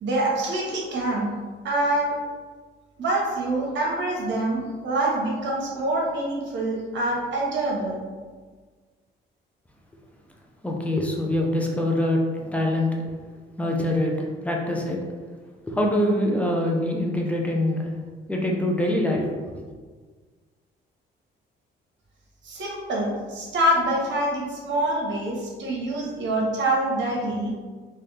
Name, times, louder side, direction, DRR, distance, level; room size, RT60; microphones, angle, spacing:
voice 1, 0.0-1.3 1.6-2.1 3.0-8.0 22.4-27.5, right 1 dB, 65° right, -2 dB, 1.2 m, -25 dB
voice 2, 10.6-12.9 13.6-14.1 14.4-15.0 15.7-17.9 18.3-19.3, left 1 dB, 5° left, -1 dB, 0.7 m, -24 dB
3.9 x 2.7 x 3.3 m, 1.5 s
cardioid pair, 90°, 20 cm